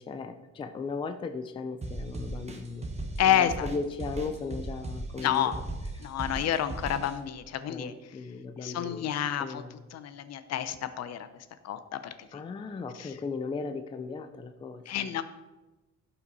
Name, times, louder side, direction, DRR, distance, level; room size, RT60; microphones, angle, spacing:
voice 1, 0.0-2.9 3.2-5.6 5.9-6.1 7.7-9.1 9.4-9.9 12.3-15.2, left 4 dB, 20° left, 8 dB, 0.4 m, -37 dB
sound 1, 1.8-7.1, right 2 dB, 20° right, 1.3 m, -37 dB
voice 2, 3.2-3.7 5.2-5.6 6.0-7.9 8.6-9.6 9.9-11.3 11.6-12.4 13.0-13.1 14.9-15.2, left 10 dB, 60° left, 11 dB, 0.8 m, -29 dB
16.5 x 5.7 x 4.1 m, 1.1 s
cardioid pair, 175°, 29 cm